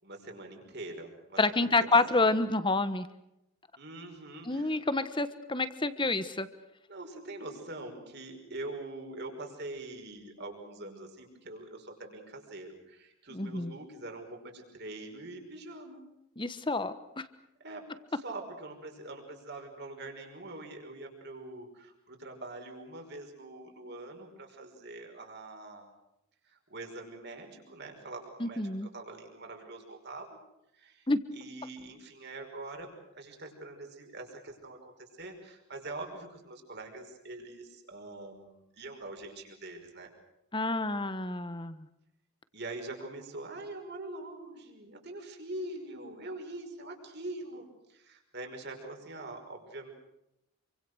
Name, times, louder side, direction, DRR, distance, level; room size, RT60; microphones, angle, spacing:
voice 1, 0.0-2.2 3.8-4.8 6.9-16.0 17.6-25.9 26.4-30.3 30.7-31.1 31.3-40.1 42.5-49.9, right 2 dB, 50° right, 3 dB, 5.5 m, -44 dB
voice 2, 1.4-3.1 4.5-6.5 13.3-13.7 16.4-17.2 28.4-28.9 31.1-31.2 40.5-41.8, left 3 dB, 20° left, 12 dB, 1.3 m, -28 dB
28.0 x 25.0 x 6.4 m, 0.84 s
head